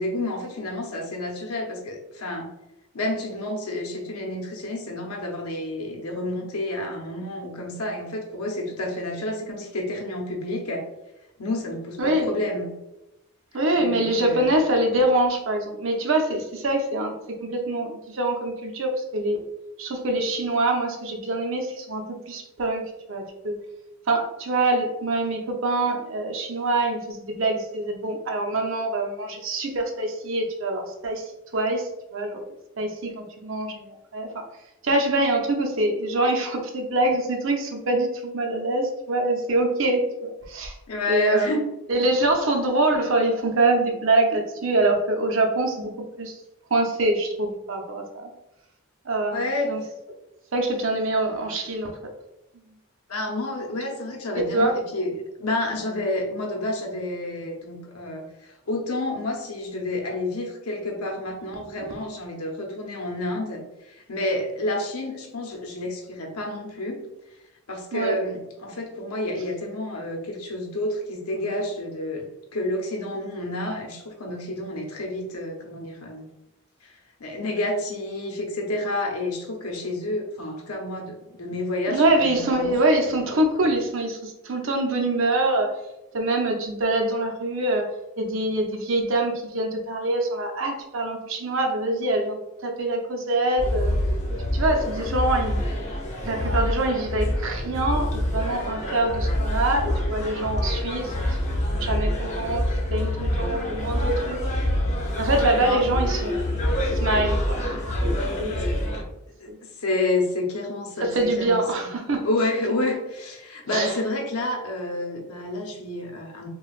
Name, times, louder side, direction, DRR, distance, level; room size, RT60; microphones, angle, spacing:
voice 1, 0.0-2.5 2.9-10.9 11.4-12.7 13.7-14.5 40.9-41.7 49.3-49.7 53.1-67.0 67.7-76.3 76.8-82.8 105.6-105.8 108.6-109.0 109.4-111.9 112.2-116.5, left 1 dB, 85° left, 2 dB, 0.8 m, -29 dB
voice 2, 12.0-12.3 13.5-19.5 19.8-23.6 24.1-31.3 31.5-32.4 32.8-34.4 34.8-40.8 41.1-41.5 41.9-46.4 46.7-48.3 49.1-49.4 49.7-49.8 50.5-52.0 54.3-54.7 67.9-68.2 81.9-85.7 86.1-87.9 88.2-94.0 94.5-95.6 96.2-101.1 101.4-104.4 105.2-106.4 106.9-108.7 109.5-109.6 111.0-112.3 113.7-114.0, right 2 dB, 60° right, 3 dB, 0.6 m, -25 dB
sound 1, 93.6-109.0, left 1 dB, 30° left, 0.6 m, -26 dB
5.0 x 2.3 x 2.4 m, 0.92 s
head